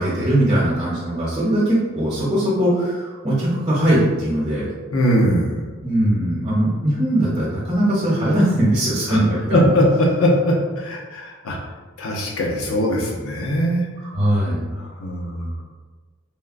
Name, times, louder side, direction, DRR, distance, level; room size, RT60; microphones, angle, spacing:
voice 1, 0.0-4.7 5.8-9.7 14.0-14.6, right 1 dB, 25° right, -10 dB, 0.9 m, -20 dB
voice 2, 4.9-5.6 9.1-9.2 9.5-11.6 12.0-13.9 14.8-15.5, equal, 85° left, -1 dB, 0.7 m, -20 dB
3.5 x 2.2 x 2.5 m, 1.3 s
head